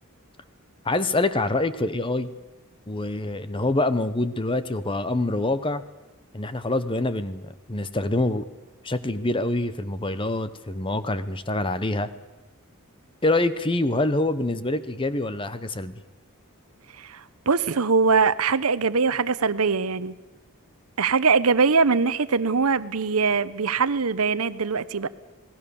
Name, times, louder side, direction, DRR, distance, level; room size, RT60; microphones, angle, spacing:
voice 1, 0.8-2.3 2.9-5.8 6.3-8.5 8.8-12.1 13.2-15.9, left 2 dB, 25° left, 13 dB, 0.9 m, -25 dB
voice 2, 17.0-20.1 21.0-25.1, right 5 dB, 80° right, 15 dB, 0.9 m, -22 dB
27.5 x 18.5 x 7.0 m, 1.1 s
head